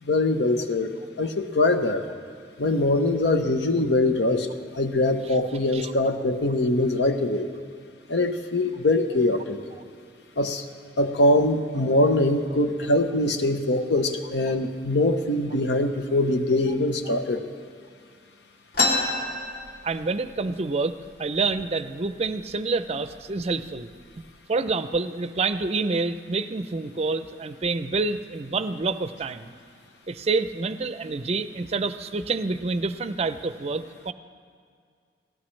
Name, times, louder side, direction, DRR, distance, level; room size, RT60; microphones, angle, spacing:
voice 1, 0.0-2.1 2.6-4.5 4.7-7.5 8.1-9.6 10.4-10.6 11.0-17.4, left 2 dB, 75° left, 8 dB, 0.9 m, -23 dB
sound 1, 18.7-20.4 20.7-20.8 21.1-21.7 22.3-22.4 23.1-23.3 23.8-24.2, left 2 dB, 55° left, 2.4 m, -27 dB
voice 2, 19.8-23.9 24.5-29.5 30.1-34.1, right 3 dB, 35° right, 12 dB, 0.5 m, -27 dB
19.0 x 17.5 x 3.3 m, 2.1 s
head